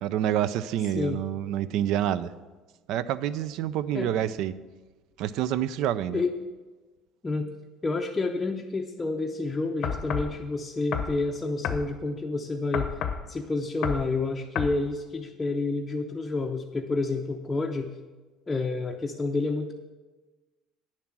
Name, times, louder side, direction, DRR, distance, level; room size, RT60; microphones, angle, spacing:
voice 1, 0.0-2.3 2.9-4.6 5.2-6.2, right 11 dB, 65° right, 15 dB, 0.4 m, -27 dB
voice 2, 7.8-12.9 13.3-17.9 18.5-19.7, left 3 dB, 15° left, 2 dB, 0.5 m, -29 dB
sound 1, 9.8-10.3 10.9-11.2 11.6-11.9 12.7-13.2 13.8-14.1 14.5-14.8, left 7 dB, 50° left, 0.7 m, -30 dB
9.7 x 7.3 x 6.0 m, 1.3 s
cardioid pair, 145°, 0 cm